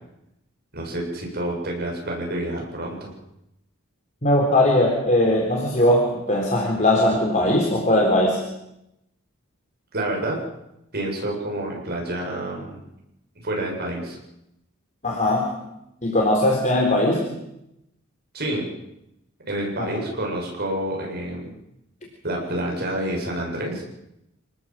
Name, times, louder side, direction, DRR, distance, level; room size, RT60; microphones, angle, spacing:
voice 1, 0.7-3.1 9.9-10.4 10.9-12.8 13.4-14.2 18.3-18.7 19.5-21.5 22.2-23.8, right 1 dB, 50° right, 0 dB, 7.9 m, -28 dB
voice 2, 4.2-8.4 15.0-15.5 16.0-17.2, left 1 dB, 35° left, -1 dB, 3.9 m, -19 dB
27.5 x 19.0 x 7.7 m, 0.86 s
head